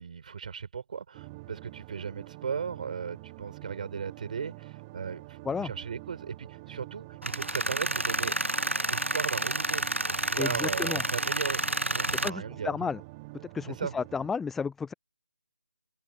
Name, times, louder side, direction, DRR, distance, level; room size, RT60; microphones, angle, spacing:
voice 1, 0.0-8.3 8.9-9.8 10.2-12.9 13.6-13.9, right 6 dB, 40° right, 4.8 m, -37 dB
sound 1, 1.1-14.3, right 23 dB, 15° right, 1.1 m, -47 dB
Tools, 7.2-12.3, right 1 dB, 90° right, 0.8 m, -30 dB
voice 2, 10.4-11.0 12.1-13.0 13.5-14.9, left 5 dB, 5° left, 0.5 m, -32 dB
figure-of-eight pair, 150°, 7 cm